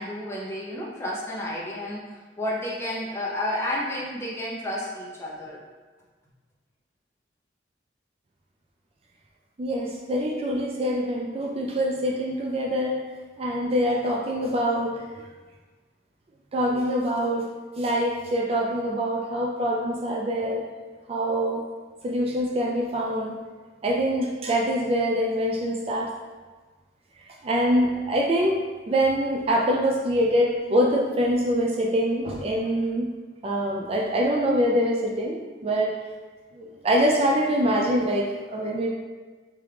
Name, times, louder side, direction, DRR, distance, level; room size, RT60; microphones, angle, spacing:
voice 1, 0.0-2.0 2.4-5.6, left 1 dB, 15° left, -6 dB, 0.9 m, -31 dB
voice 2, 9.6-13.0 13.4-14.9 16.5-17.5 17.8-20.6 21.1-21.6 22.0-23.4 23.8-26.1 27.2-28.6 28.9-33.1 33.4-36.0 36.6-38.9, equal, 35° right, -1 dB, 0.3 m, -24 dB
3.5 x 3.1 x 3.4 m, 1.3 s
head